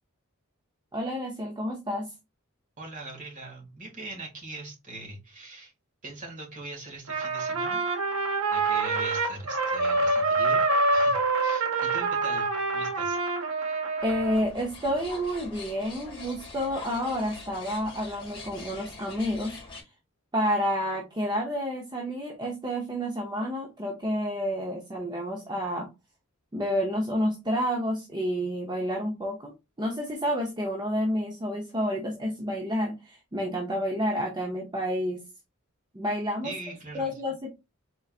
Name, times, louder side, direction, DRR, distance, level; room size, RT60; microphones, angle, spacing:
voice 1, 0.9-2.1 14.0-19.6 20.3-25.9 26.5-29.5 29.8-35.2 35.9-36.5 36.9-37.5, equal, 20° right, 0 dB, 0.7 m, -29 dB
voice 2, 2.8-5.7 6.0-7.8 8.5-10.6 10.9-13.2 36.4-37.4, right 2 dB, 35° right, -1 dB, 1.9 m, -41 dB
Trumpet, 7.1-14.4, right 3 dB, 70° right, 0.9 m, -26 dB
sound 1, 14.0-19.8, left 3 dB, 25° left, 1.6 m, -44 dB
4.4 x 3.8 x 2.4 m, 0.25 s
head